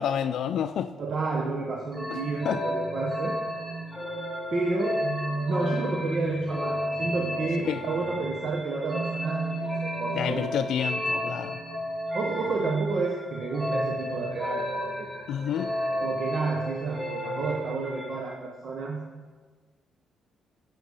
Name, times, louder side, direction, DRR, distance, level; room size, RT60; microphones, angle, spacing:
voice 1, 0.0-0.9 2.1-2.2 2.4-2.6 7.7-7.8 10.1-11.6 15.3-15.7, left 9 dB, 75° left, 11 dB, 0.4 m, -29 dB
voice 2, 1.0-3.3 4.5-5.0 5.4-10.5 12.1-15.1 16.0-19.0, right 3 dB, 55° right, 1 dB, 1.0 m, -30 dB
sound 1, 1.9-18.3, equal, 10° right, 2.6 m, -32 dB
9.4 x 6.8 x 5.4 m, 1.5 s
cardioid pair, 100°, 0 cm